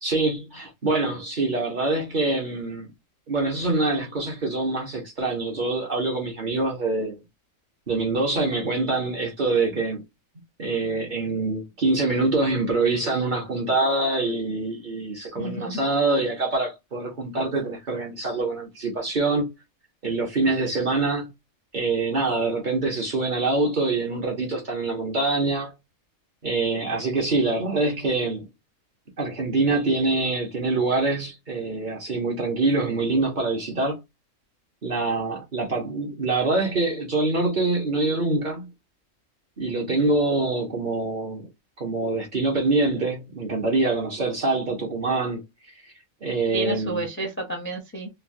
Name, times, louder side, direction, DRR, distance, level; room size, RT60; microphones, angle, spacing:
voice 1, 0.0-2.9 3.3-7.2 7.9-10.0 10.6-19.5 20.0-21.3 21.7-25.7 26.4-28.5 29.2-34.0 34.8-38.7 39.6-41.5 41.8-45.4 46.2-47.1, right 3 dB, 45° right, 0.9 m, -25 dB
voice 2, 15.4-15.8 46.5-48.1, right 1 dB, 15° left, 0.5 m, -30 dB
3.2 x 2.2 x 2.5 m
omnidirectional pair, 1.4 m